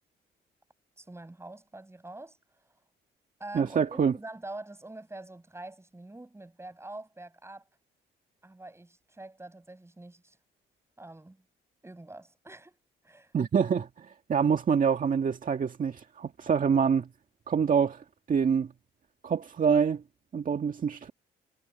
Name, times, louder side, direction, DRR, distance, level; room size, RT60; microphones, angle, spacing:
voice 1, 1.0-2.4 3.4-7.6 8.4-10.4 11.0-11.4 11.8-12.8 13.0-13.3, right 2 dB, 15° right, 7.9 m, -45 dB
voice 2, 3.5-4.1 13.3-17.1 17.5-18.7 19.2-20.0 20.3-21.1, right 6 dB, 40° right, 1.9 m, -26 dB
cardioid pair, 90°, 20 cm